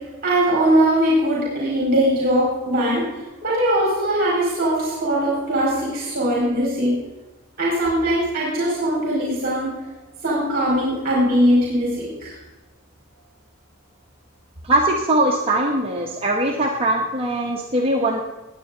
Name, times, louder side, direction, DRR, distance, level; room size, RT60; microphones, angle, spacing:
voice 1, 0.2-6.9 7.6-9.7 10.2-12.4, right 1 dB, 45° right, -6 dB, 4.6 m, -20 dB
voice 2, 14.6-18.2, right 1 dB, 25° right, -1 dB, 1.0 m, -21 dB
19.5 x 9.1 x 3.9 m, 1.1 s
head